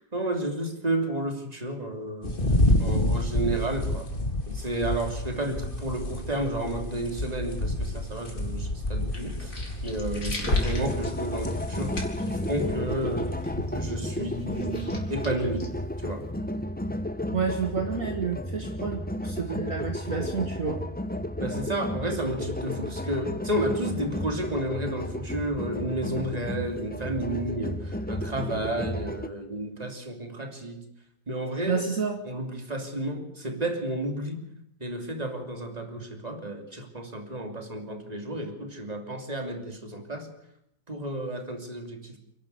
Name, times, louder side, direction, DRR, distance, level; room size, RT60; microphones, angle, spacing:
voice 1, 0.0-2.4 2.8-4.1 4.5-13.3 13.7-15.7 16.0-16.3 21.4-30.8 31.3-31.9 32.3-34.5 34.8-40.3 40.9-42.2, right 1 dB, 20° right, 4 dB, 3.1 m, -32 dB
sound 1, 2.2-13.4, left 1 dB, 30° left, 2.6 m, -30 dB
sound 2, 9.0-16.3, left 2 dB, 50° left, 4.4 m, -35 dB
sound 3, 10.4-29.3, left 1 dB, 10° left, 0.5 m, -33 dB
voice 2, 17.3-20.8 31.7-32.2, right 5 dB, 50° right, 4 dB, 2.0 m, -29 dB
29.5 x 11.5 x 8.1 m, 0.74 s
omnidirectional pair, 1.8 m